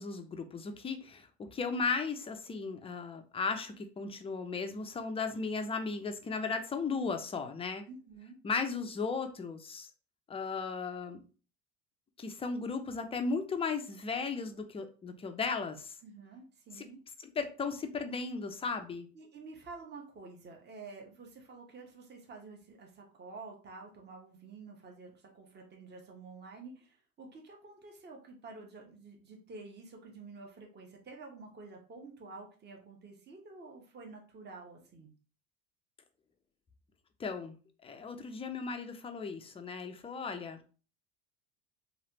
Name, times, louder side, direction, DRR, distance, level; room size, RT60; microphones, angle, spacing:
voice 1, 0.0-7.8 8.4-9.9 10.3-11.2 12.2-15.9 16.8-16.9 17.2-19.1 37.2-37.6 37.8-40.8, left 4 dB, 15° left, 7 dB, 0.4 m, -36 dB
voice 2, 7.9-8.4 16.0-17.0 19.1-35.1, right 3 dB, 25° right, 1 dB, 0.9 m, -50 dB
3.1 x 2.5 x 2.8 m, 0.37 s
hypercardioid pair, 85°, 40 cm